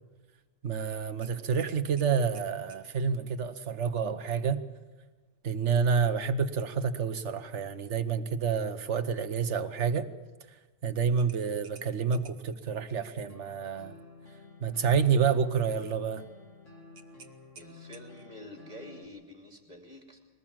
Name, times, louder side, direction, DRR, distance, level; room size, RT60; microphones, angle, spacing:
voice 1, 0.6-4.6 5.4-10.1 10.8-13.9 14.6-16.3, right 6 dB, 60° right, 1.4 m, -28 dB
sound 1, 1.2-2.9 5.5-5.7 6.2-6.3 11.2-12.6 16.9-18.4, right 5 dB, 85° right, 1.7 m, -55 dB
sound 2, 13.3-19.1, left 3 dB, 65° left, 3.2 m, -51 dB
voice 2, 17.5-20.2, left 1 dB, 30° right, 3.0 m, -48 dB
23.0 x 19.5 x 7.5 m
omnidirectional pair, 1.4 m